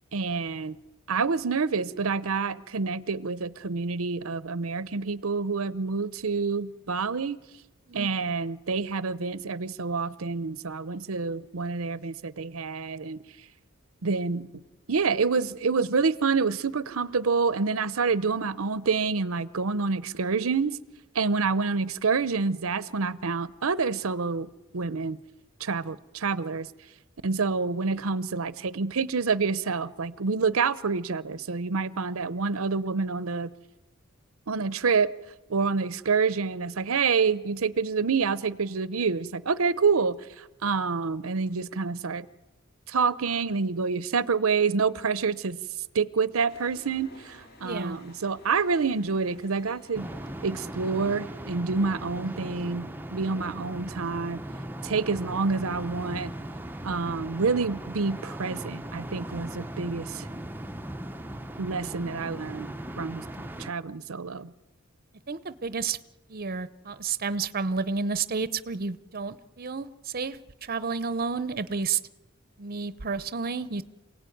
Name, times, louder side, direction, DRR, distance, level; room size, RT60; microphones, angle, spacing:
voice 1, 0.1-0.8 1.1-7.4 7.9-13.2 14.0-14.5 14.9-20.8 21.1-24.5 24.7-25.2 25.6-26.7 27.2-33.5 34.5-35.1 35.5-42.3 42.9-45.6 45.9-50.1 50.4-54.4 54.8-56.3 56.8-60.3 61.6-63.2 63.6-64.5, right 4 dB, 80° right, 0.7 m, -27 dB
sound 1, 46.5-51.6, left 1 dB, 50° left, 4.0 m, -53 dB
voice 2, 47.6-48.0 65.3-66.0 66.3-72.0 72.6-73.8, right 5 dB, 45° right, 0.8 m, -31 dB
sound 2, 49.9-63.7, right 1 dB, 10° right, 0.7 m, -38 dB
27.5 x 17.5 x 9.3 m
head